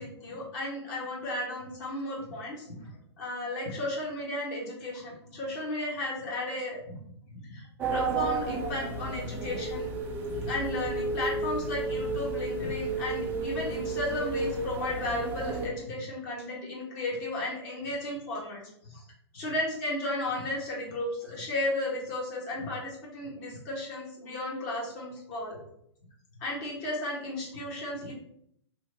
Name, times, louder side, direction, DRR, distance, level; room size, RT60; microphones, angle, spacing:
voice 1, 0.0-2.9 3.2-7.0 7.3-9.9 10.3-18.6 18.9-19.0 19.3-25.6 26.4-28.1, left 1 dB, 40° left, -4 dB, 1.1 m, -34 dB
sound 1, 7.8-15.7, right 3 dB, 15° right, 0.3 m, -32 dB
2.8 x 2.0 x 3.3 m, 0.71 s
hypercardioid pair, 125°, 15 cm